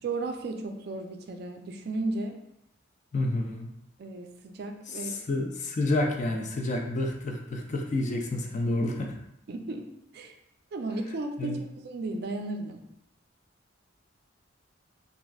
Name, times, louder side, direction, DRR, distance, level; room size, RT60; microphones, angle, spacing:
voice 1, 0.0-2.4 4.0-5.2 8.7-8.8 9.5-10.4 10.7-11.6 11.8-12.8, right 2 dB, 55° right, 4 dB, 0.3 m, -34 dB
voice 2, 3.1-3.7 5.0-9.1 11.4-11.6, left 2 dB, 40° left, 2 dB, 0.4 m, -29 dB
3.4 x 2.4 x 2.2 m, 0.80 s
head